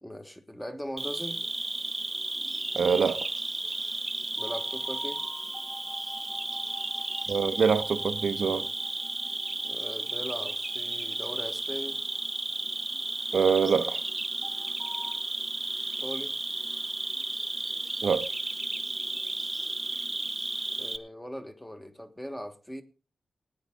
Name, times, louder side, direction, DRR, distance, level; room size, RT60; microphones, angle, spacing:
voice 1, 0.0-1.4 4.4-5.2 9.6-12.0 16.0-16.3 20.8-22.8, equal, 5° left, 1.4 m, -39 dB
Cricket, 1.0-21.0, right 2 dB, 20° right, 0.9 m, -33 dB
voice 2, 2.7-3.3 7.3-8.7 13.3-14.0 18.0-18.3, right 6 dB, 65° right, 0.8 m, -25 dB
sound 1, 4.4-13.4 14.4-15.1, left 2 dB, 40° left, 4.3 m, -48 dB
18.0 x 9.6 x 3.7 m
wide cardioid pair, 140°, 0 cm